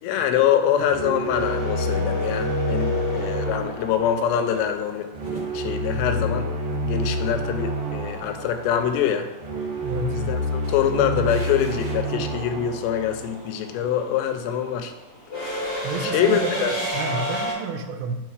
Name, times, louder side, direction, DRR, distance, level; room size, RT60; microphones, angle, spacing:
voice 1, 0.0-5.1 5.5-9.3 10.1-14.9 16.0-16.7, left 9 dB, 90° left, 7 dB, 2.8 m, -24 dB
sound 1, 0.9-14.0, equal, 60° right, 1.8 m, -29 dB
sound 2, 1.3-5.4 7.8-7.9 9.2-9.5 9.7-17.5, left 1 dB, 40° left, 1.4 m, -30 dB
sound 3, 1.7-2.0 2.7-2.8 3.2-4.4 4.8-6.4 6.7-7.2 7.5-7.6 7.9-8.3 8.7-9.1 9.5-10.2 10.6-11.9, right 1 dB, 40° right, 0.6 m, -46 dB
voice 2, 9.8-10.2 15.8-18.2, right 3 dB, 90° right, 6 dB, 2.8 m, -30 dB
6.0 x 4.5 x 4.7 m, 1.1 s
omnidirectional pair, 4.9 m